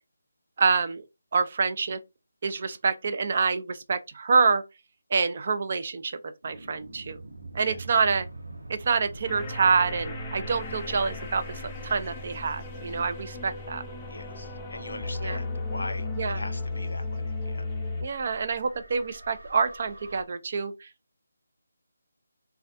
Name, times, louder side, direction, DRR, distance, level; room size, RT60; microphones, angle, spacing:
voice 1, 0.6-1.0 1.3-2.0 2.4-4.6 5.1-6.2 6.4-7.2 7.5-8.3 8.7-13.8 15.2-15.4 16.2-16.4 18.0-20.9, right 5 dB, 45° right, 0.4 m, -26 dB
sound 1, 6.4-20.2, equal, 90° right, 0.9 m, -44 dB
sound 2, 9.3-18.0, left 2 dB, 20° left, 0.5 m, -35 dB
voice 2, 14.1-17.7, left 2 dB, 75° left, 0.5 m, -40 dB
2.3 x 2.2 x 2.5 m
figure-of-eight pair, 160°, 0 cm